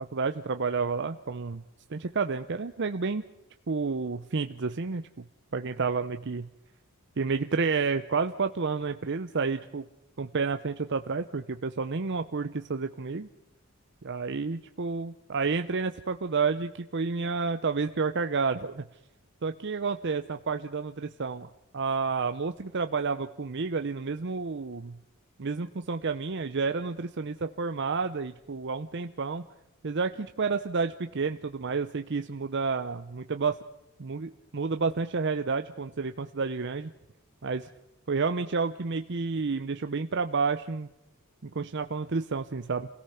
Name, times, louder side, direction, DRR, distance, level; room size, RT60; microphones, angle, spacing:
voice 1, 0.0-1.6 1.9-3.2 3.7-5.2 5.5-6.5 7.2-9.9 10.2-13.3 14.0-18.8 19.4-21.5 21.7-25.0 25.4-29.4 29.8-33.6 34.0-36.9 37.4-37.7 38.1-40.9 41.4-42.9, right 4 dB, 55° right, 8 dB, 0.7 m, -30 dB
27.5 x 17.5 x 5.8 m, 0.87 s
head